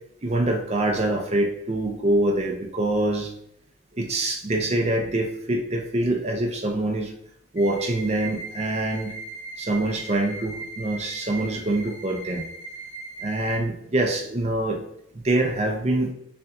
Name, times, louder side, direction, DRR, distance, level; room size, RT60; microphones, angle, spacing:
voice 1, 0.2-3.3 3.9-7.1 7.5-9.1 9.6-12.4 13.2-14.8 15.1-16.1, right 1 dB, 35° right, 3 dB, 0.6 m, -25 dB
sound 1, 7.6-13.6, right 3 dB, 35° left, 0.6 m, -38 dB
6.8 x 2.5 x 2.5 m, 0.74 s
head